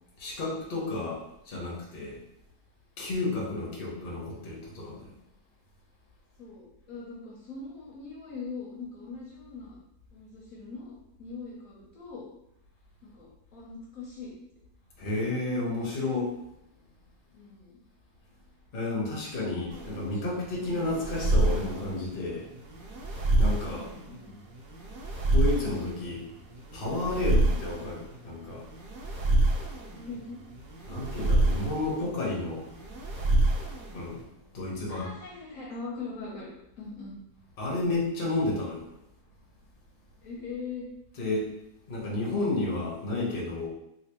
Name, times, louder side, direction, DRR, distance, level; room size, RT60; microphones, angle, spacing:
voice 1, 0.2-2.2 3.0-5.1 15.0-16.4 18.7-22.5 23.4-23.9 25.3-26.3 26.7-28.7 30.9-32.7 33.9-34.2 34.5-35.1 37.6-38.9 41.2-41.5 41.9-43.7, left 2 dB, 45° left, -3 dB, 1.0 m, -31 dB
voice 2, 3.5-3.9 6.4-9.8 10.1-10.9 11.2-12.3 13.0-14.3 17.3-17.8 19.3-20.2 23.6-24.4 27.4-27.8 29.8-30.4 34.9-36.5 36.8-37.2 40.2-40.9, left 4 dB, 65° left, -4 dB, 1.1 m, -42 dB
sound 1, 19.7-34.2, right 1 dB, 85° right, 1.4 m, -28 dB
3.2 x 3.0 x 2.9 m, 0.83 s
omnidirectional pair, 1.7 m